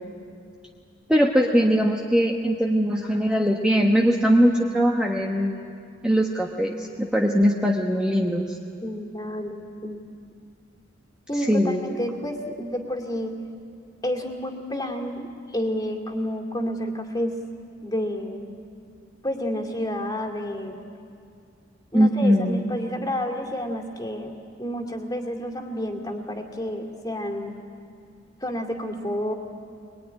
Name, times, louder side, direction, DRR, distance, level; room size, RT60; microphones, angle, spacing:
voice 1, 1.1-5.5 6.0-8.6 11.3-11.8 21.9-22.6, equal, 5° right, -1 dB, 1.1 m, -21 dB
voice 2, 8.8-10.1 11.3-13.4 14.0-17.3 17.8-18.5 19.2-20.8 21.9-27.5 28.4-29.3, equal, 20° left, 2 dB, 2.5 m, -30 dB
23.0 x 22.5 x 10.0 m, 2.5 s
head